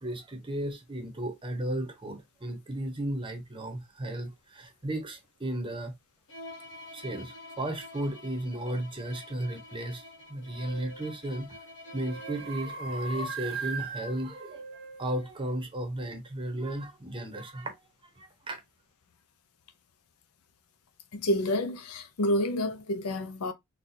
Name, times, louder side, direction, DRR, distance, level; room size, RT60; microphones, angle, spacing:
voice 1, 0.0-5.9 6.9-10.0 10.3-11.5 11.9-14.6 15.0-17.7 18.0-18.6, right 1 dB, 25° right, 0.8 m, -34 dB
Bowed string instrument, 6.3-13.0, left 2 dB, 55° left, 1.1 m, -47 dB
sound 1, 10.7-11.1 11.9-15.3, right 4 dB, 60° right, 0.6 m, -39 dB
voice 2, 21.1-23.5, left 1 dB, 75° left, 0.6 m, -29 dB
4.1 x 2.3 x 2.7 m
head